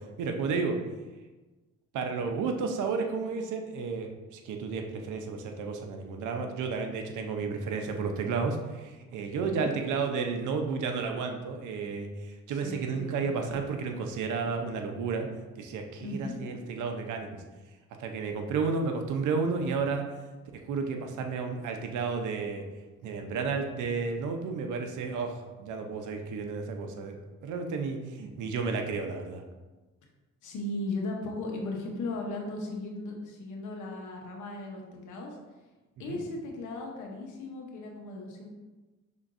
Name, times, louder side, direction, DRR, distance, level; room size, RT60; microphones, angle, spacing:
voice 1, 0.2-0.8 1.9-15.3 15.6-17.4 18.0-20.1 20.7-22.6 23.0-27.1 27.4-29.4 36.1-36.2, right 4 dB, 80° right, 4 dB, 0.7 m, -32 dB
voice 2, 9.4-9.7 12.5-13.6 16.0-16.4 30.4-35.4 36.0-38.5, left 2 dB, 80° left, 0 dB, 1.0 m, -37 dB
5.6 x 3.5 x 2.6 m, 1.2 s
cardioid pair, 90°, 30 cm